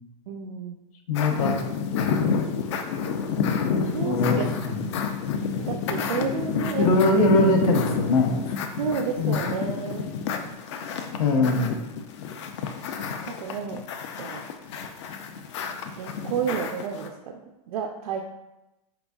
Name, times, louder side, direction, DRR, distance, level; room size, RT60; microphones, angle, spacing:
voice 1, 0.3-0.8 3.8-4.9 5.6-6.9 8.8-10.0 11.4-11.7 13.3-13.8 14.2-14.5 16.0-17.4 17.7-18.2, right 7 dB, 80° right, 3 dB, 0.4 m, -31 dB
voice 2, 1.1-1.5 4.0-4.8 6.8-8.5 9.2-9.4 11.2-11.8, left 2 dB, 70° left, 3 dB, 0.8 m, -22 dB
sound 1, 1.1-17.1, left 6 dB, 50° left, 0.4 m, -29 dB
4.4 x 3.9 x 2.3 m, 0.96 s
supercardioid pair, 170°, 19 cm